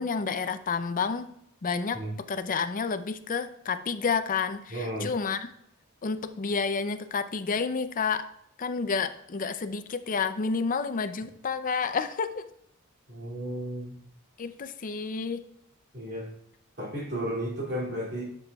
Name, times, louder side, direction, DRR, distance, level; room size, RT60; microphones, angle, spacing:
voice 1, 0.0-1.3 1.6-2.0 2.3-5.4 6.0-8.3 8.6-12.5 14.4-15.4, left 5 dB, 40° left, 11 dB, 0.5 m, -30 dB
voice 2, 4.7-5.1 13.1-14.0 15.9-16.3 16.8-18.2, right 1 dB, 50° right, -3 dB, 2.7 m, -33 dB
11.5 x 6.8 x 2.3 m, 0.73 s
head